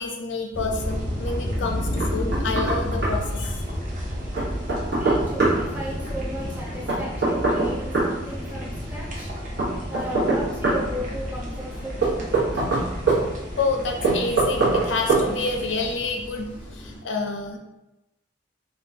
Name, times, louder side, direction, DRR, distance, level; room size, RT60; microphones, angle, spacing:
voice 1, 0.0-3.6 13.6-17.6, left 3 dB, 90° left, 2 dB, 0.5 m, -28 dB
sound 1, 0.5-17.0, equal, 10° left, 0.5 m, -32 dB
sound 2, 0.7-16.0, equal, 45° right, 0.6 m, -40 dB
Knock, 2.0-2.8 3.0-3.1 4.4-5.6 6.9-8.1 9.6-10.8 12.0-13.2 14.0-14.8 15.1-15.3, right 3 dB, 60° right, 1.0 m, -22 dB
voice 2, 4.9-9.3 9.9-12.4, equal, 10° right, -6 dB, 0.8 m, -35 dB
3.6 x 2.3 x 2.7 m, 0.96 s
head